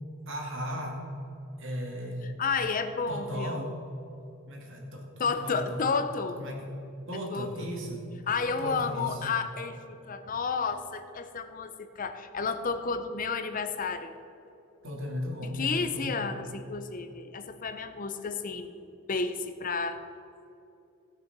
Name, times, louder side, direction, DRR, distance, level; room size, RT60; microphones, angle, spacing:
voice 1, 0.3-1.0 1.6-2.2 3.1-3.7 4.5-5.8 6.4-6.7 7.1-8.0 8.6-9.2 14.8-16.2, equal, 60° right, 0 dB, 2.5 m, -36 dB
voice 2, 2.2-3.6 5.2-6.4 7.3-7.7 8.3-14.1 15.4-20.0, left 4 dB, 40° left, 8 dB, 0.6 m, -31 dB
16.0 x 6.6 x 6.0 m, 2.9 s
head